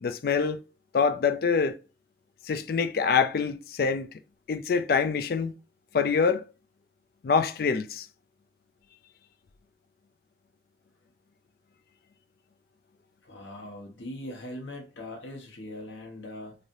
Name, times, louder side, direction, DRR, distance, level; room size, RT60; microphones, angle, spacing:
voice 1, 0.0-0.6 0.9-1.8 2.4-4.2 4.5-5.5 5.9-6.5 7.2-8.1, left 5 dB, 50° left, 0.3 m, -25 dB
voice 2, 13.2-16.6, left 1 dB, 85° left, 1.1 m, -40 dB
3.2 x 2.7 x 2.5 m
head